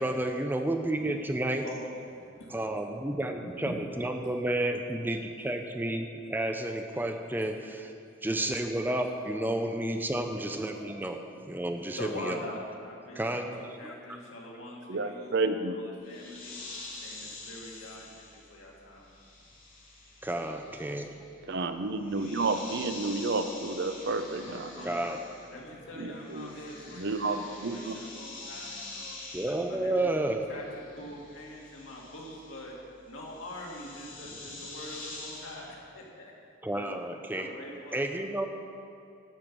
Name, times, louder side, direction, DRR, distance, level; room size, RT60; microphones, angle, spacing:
voice 1, 0.0-1.6 2.5-7.9 8.2-11.2 11.5-12.4 13.2-13.9 20.2-21.1 24.8-25.2 29.3-30.5 36.6-37.5 37.9-38.5, right 1 dB, 10° right, 5 dB, 0.5 m, -31 dB
voice 2, 1.0-2.7 3.1-4.3 5.4-5.5 7.0-7.4 9.0-9.3 10.7-10.8 11.7-16.6 16.9-19.1 21.2-21.3 24.1-25.1 25.5-29.2 29.7-30.1 30.5-32.8 33.0-36.3 36.7-37.0 37.3-38.5, left 1 dB, 80° left, -3 dB, 2.1 m, -44 dB
voice 3, 14.9-15.8 21.5-24.7 26.0-26.5 26.9-28.0, right 3 dB, 55° right, 8 dB, 0.6 m, -31 dB
sound 1, 16.0-25.7 26.0-35.7, left 2 dB, 45° left, 2.5 m, -46 dB
11.0 x 7.0 x 6.1 m, 2.5 s
head